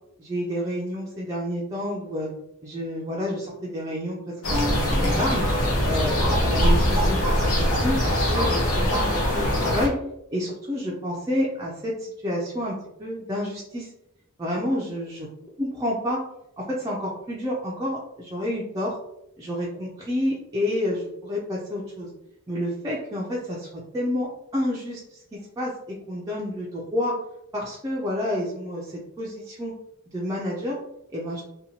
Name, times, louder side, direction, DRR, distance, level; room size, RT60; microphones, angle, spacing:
voice 1, 0.2-2.3 2.6-5.5 5.8-10.0 10.3-13.9 14.4-15.3 15.6-16.2 16.6-19.0 19.4-22.1 22.5-25.8 26.1-27.2 27.5-29.7 30.1-30.8 31.1-31.4, left 1 dB, 15° right, -5 dB, 0.3 m, -29 dB
Ronda - Chefchauen Walk - Paseo de Chefchauen, 4.4-9.9, equal, 85° left, 0.7 m, -22 dB
2.7 x 2.2 x 2.7 m, 0.83 s
head